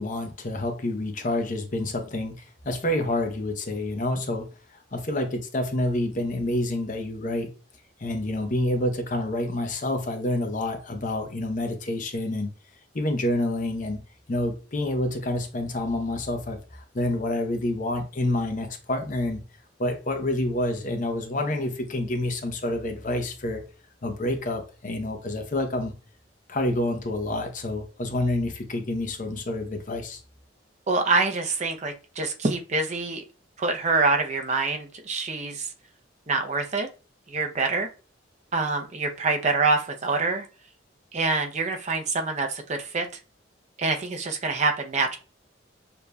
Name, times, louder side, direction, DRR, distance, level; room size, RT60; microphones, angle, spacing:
voice 1, 0.0-2.3 2.6-4.5 4.9-7.5 8.0-12.5 12.9-14.0 14.3-19.4 19.8-23.6 24.0-25.9 26.5-30.2, left 1 dB, 45° left, 6 dB, 0.7 m, -28 dB
voice 2, 30.9-33.2 33.6-35.7 36.3-36.9 37.3-37.9 38.5-40.5 41.1-43.1 43.8-45.2, right 3 dB, 35° right, 4 dB, 0.5 m, -25 dB
6.7 x 2.7 x 2.2 m, 0.34 s
head